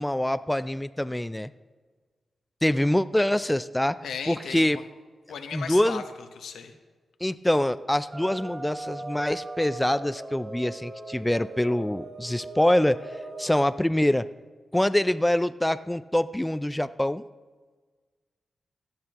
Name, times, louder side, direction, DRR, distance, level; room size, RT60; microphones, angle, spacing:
voice 1, 0.0-1.5 2.6-4.0 4.3-4.8 5.5-6.0 7.2-13.0 13.4-14.3 14.7-17.2, left 1 dB, 10° left, 13 dB, 0.4 m, -25 dB
voice 2, 4.0-4.8 5.3-6.7, left 6 dB, 90° left, 7 dB, 0.9 m, -36 dB
sound 1, 8.1-13.7, right 2 dB, 35° right, 4.2 m, -39 dB
16.5 x 10.5 x 3.0 m, 1.4 s
cardioid pair, 60°, 0 cm